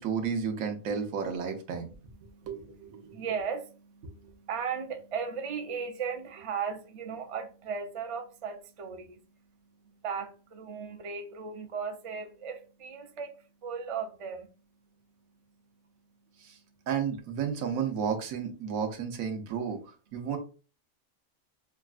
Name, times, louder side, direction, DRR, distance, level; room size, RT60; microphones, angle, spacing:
voice 1, 0.0-1.9 2.5-3.1 16.4-16.5 16.9-19.8 20.1-20.4, right 7 dB, 80° right, 1.2 m, -32 dB
voice 2, 1.8-16.9, right 6 dB, 50° right, 0.4 m, -38 dB
6.2 x 2.3 x 2.4 m
omnidirectional pair, 1.4 m